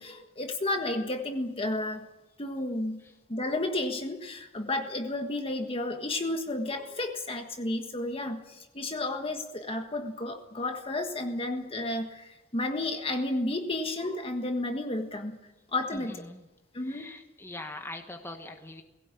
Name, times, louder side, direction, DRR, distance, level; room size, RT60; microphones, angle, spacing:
voice 1, 0.0-2.1 2.4-3.0 3.3-15.4 15.7-16.2 16.7-17.1, left 2 dB, 30° left, 4 dB, 1.5 m, -32 dB
voice 2, 15.9-16.5 16.8-18.8, left 1 dB, 10° left, 4 dB, 1.4 m, -42 dB
19.5 x 17.5 x 8.3 m, 1.1 s
head